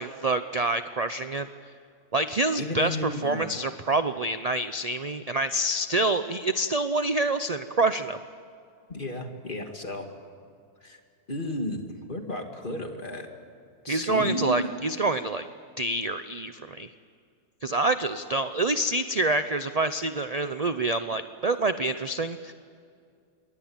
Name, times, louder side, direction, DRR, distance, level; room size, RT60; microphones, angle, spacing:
voice 1, 0.0-1.5 2.1-8.2 13.9-15.5 15.8-16.9 17.6-22.5, right 2 dB, 45° right, 10 dB, 0.5 m, -27 dB
voice 2, 2.6-3.4 8.9-10.1 10.8-11.0 11.3-13.3 13.8-14.7, left 1 dB, 30° left, 4 dB, 2.4 m, -33 dB
27.5 x 22.5 x 8.9 m, 2.3 s
omnidirectional pair, 1.7 m